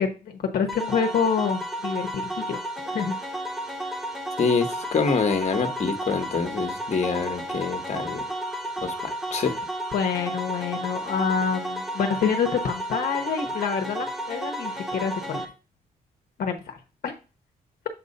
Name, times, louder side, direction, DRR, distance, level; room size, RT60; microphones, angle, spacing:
voice 1, 0.0-2.2 2.5-2.6 2.9-3.2 9.9-15.5 16.4-16.8 17.0-17.1, left 6 dB, 70° left, 4 dB, 1.0 m, -27 dB
sound 1, 0.7-15.5, right 1 dB, ahead, 1.2 m, -32 dB
voice 2, 4.4-8.2 8.8-9.6, left 5 dB, 45° left, 6 dB, 1.3 m, -26 dB
7.5 x 2.6 x 5.4 m, 0.32 s
cardioid pair, 90°, 16 cm